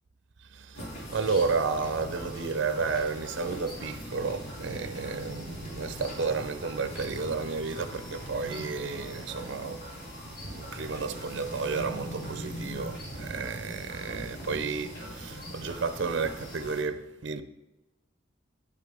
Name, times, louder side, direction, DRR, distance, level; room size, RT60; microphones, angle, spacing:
voice 1, 0.5-0.8 1.1-9.9 10.4-17.4, right 4 dB, 65° right, 0.6 m, -32 dB
sound 1, 0.7-16.8, equal, 60° left, 2.4 m, -41 dB
sound 2, 1.0-6.4, left 1 dB, 40° left, 1.8 m, -53 dB
sound 3, 3.3-16.8, right 1 dB, 80° left, 2.8 m, -54 dB
9.9 x 8.4 x 3.4 m
head